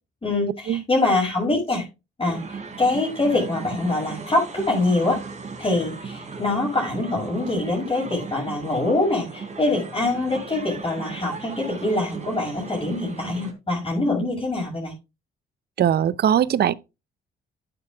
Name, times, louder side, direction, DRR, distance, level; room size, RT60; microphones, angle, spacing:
voice 1, 0.2-1.8 2.2-5.2 5.6-14.9, left 2 dB, 25° left, 5.8 m, -24 dB
sound 1, 2.2-13.5, right 4 dB, 35° right, 3.4 m, -37 dB
voice 2, 15.8-16.7, right 9 dB, 55° right, 0.6 m, -20 dB
11.0 x 9.7 x 2.3 m
cardioid pair, 90°, 20 cm